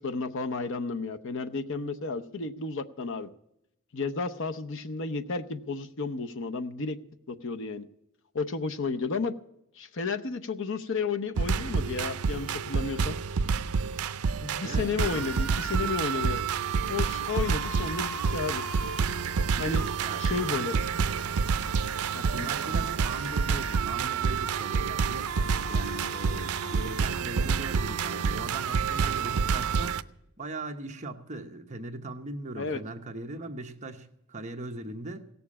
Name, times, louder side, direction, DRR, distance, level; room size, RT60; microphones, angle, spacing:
voice 1, 0.0-3.3 3.9-7.0 7.3-7.8 8.3-9.4 9.8-13.2 14.4-16.4 16.9-18.6 19.6-19.9 20.2-20.8 22.1-22.5 32.6-32.8, left 4 dB, 60° left, 8 dB, 0.8 m, -32 dB
sound 1, 11.4-30.0, right 5 dB, 80° right, 0.5 m, -28 dB
voice 2, 14.6-15.3 19.5-20.2 20.5-20.8 22.3-25.3 25.7-30.0 30.4-35.3, right 2 dB, 35° right, 4 dB, 1.0 m, -39 dB
16.5 x 7.0 x 8.5 m, 0.82 s
head